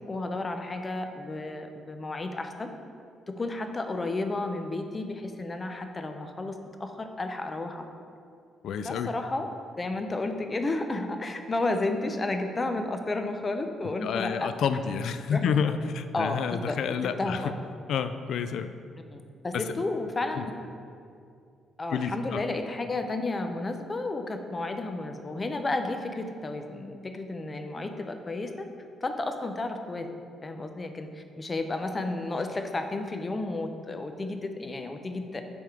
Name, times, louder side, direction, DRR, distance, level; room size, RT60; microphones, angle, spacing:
voice 1, 0.1-2.7 3.3-7.9 8.8-9.5 9.8-14.5 15.3-15.4 16.1-16.4 16.7-16.8 17.2-17.5 19.1-20.4 21.8-28.7 29.0-30.1 30.4-35.4, left 2 dB, 25° left, 6 dB, 0.6 m, -32 dB
voice 2, 8.6-9.1 14.0-17.4 17.9-18.7 19.5-19.6 20.4-20.5 21.9-22.4, left 7 dB, 70° left, 10 dB, 0.3 m, -29 dB
9.4 x 3.6 x 4.5 m, 2.4 s
cardioid pair, 90°, 0 cm